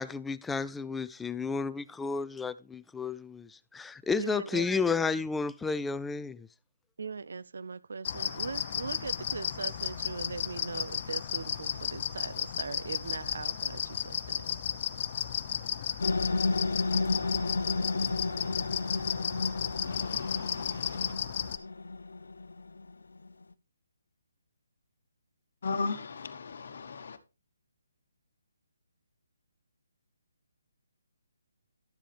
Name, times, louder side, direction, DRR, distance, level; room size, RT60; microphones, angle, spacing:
voice 1, 0.0-6.5, left 4 dB, 5° left, 0.4 m, -32 dB
voice 2, 4.2-4.9 7.0-14.6, right 4 dB, 70° right, 0.5 m, -40 dB
sound 1, 8.0-21.6, left 9 dB, 40° left, 0.7 m, -34 dB
sound 2, 16.0-23.3, left 3 dB, 80° left, 0.5 m, -32 dB
voice 3, 19.8-21.1 25.6-27.2, left 4 dB, 60° left, 1.1 m, -37 dB
12.0 x 7.5 x 3.3 m
figure-of-eight pair, 150°, 0 cm